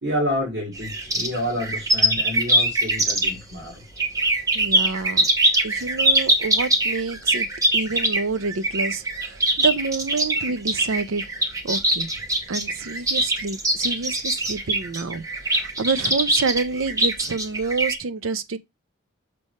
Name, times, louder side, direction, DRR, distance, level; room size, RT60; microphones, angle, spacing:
voice 1, 0.0-3.8, equal, 55° right, 2.3 m, -28 dB
sound 1, 0.7-3.5 4.0-18.0, right 1 dB, 15° right, 0.9 m, -22 dB
voice 2, 4.5-5.3 5.6-7.5 7.7-11.2 11.6-12.1 12.5-18.6, right 4 dB, 90° right, 0.6 m, -28 dB
6.9 x 3.3 x 5.3 m
head